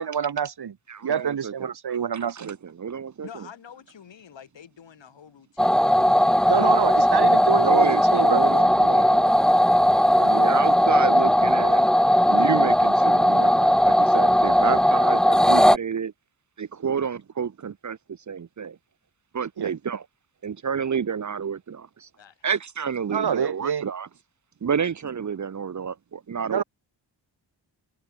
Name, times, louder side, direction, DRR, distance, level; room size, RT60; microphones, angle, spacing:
voice 1, 0.0-0.8 1.0-2.5 6.5-8.5 19.6-19.7 23.1-23.9 26.5-26.6, right 7 dB, 60° right, 2.6 m, -26 dB
voice 2, 0.9-3.5 7.5-9.5 10.2-11.9 12.3-16.1 16.6-18.8 19.3-20.0 20.4-22.1 22.4-24.1 24.6-26.6, right 7 dB, 40° right, 0.9 m, -30 dB
voice 3, 3.2-8.0 22.2-22.5, left 8 dB, 75° left, 7.1 m, -48 dB
sound 1, 5.6-15.8, equal, ahead, 0.8 m, -18 dB
wide cardioid pair, 170°, 44 cm